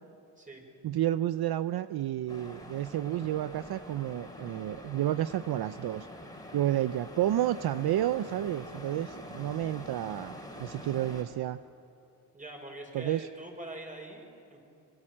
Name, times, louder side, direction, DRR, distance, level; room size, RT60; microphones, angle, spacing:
voice 1, 0.8-6.1 6.5-11.6 12.9-13.3, right 12 dB, 70° right, 13 dB, 0.6 m, -31 dB
sound 1, 2.3-11.2, left 1 dB, 10° left, 3.9 m, -45 dB
voice 2, 12.3-14.6, right 1 dB, 20° right, 1 dB, 6.1 m, -44 dB
26.0 x 23.5 x 7.5 m, 2.8 s
cardioid pair, 80°, 40 cm